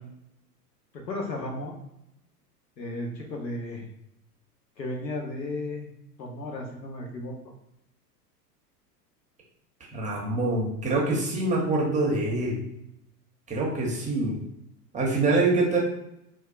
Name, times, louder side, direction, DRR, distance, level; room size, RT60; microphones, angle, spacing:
voice 1, 0.9-1.7 2.8-3.8 4.8-5.9 6.2-7.3 15.3-15.4, left 2 dB, 85° left, 1 dB, 1.0 m, -34 dB
voice 2, 9.9-12.6 13.5-14.4 14.9-15.8, right 2 dB, 15° right, -2 dB, 0.7 m, -25 dB
4.4 x 2.3 x 2.4 m, 0.81 s
hypercardioid pair, 100°, 49 cm